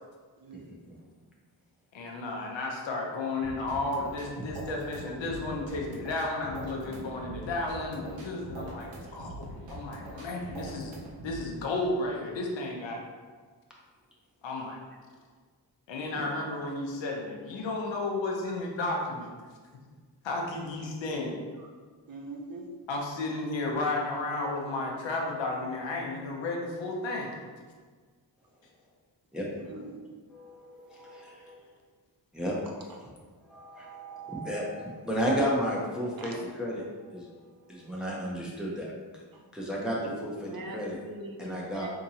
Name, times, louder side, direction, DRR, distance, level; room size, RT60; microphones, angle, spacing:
voice 1, 0.4-0.7 22.1-22.7 29.5-30.0 36.2-36.5 39.3-39.4 40.0-41.9, right 2 dB, 50° right, 0 dB, 0.7 m, -43 dB
voice 2, 1.9-10.9 11.2-13.0 14.4-14.8 15.9-19.3 20.2-21.4 22.9-27.4, left 2 dB, 75° left, 0 dB, 0.7 m, -33 dB
sound 1, 3.4-11.4, right 2 dB, 90° right, 0.8 m, -43 dB
voice 3, 8.3-9.1 16.2-16.3 29.3-29.5 30.3-31.5 32.3-32.5 33.5-36.3 36.6-37.4 37.7-38.9 39.5-41.0 41.4-41.9, equal, ahead, -4 dB, 0.7 m, -33 dB
3.6 x 2.8 x 2.8 m, 1.5 s
cardioid pair, 65°, 45 cm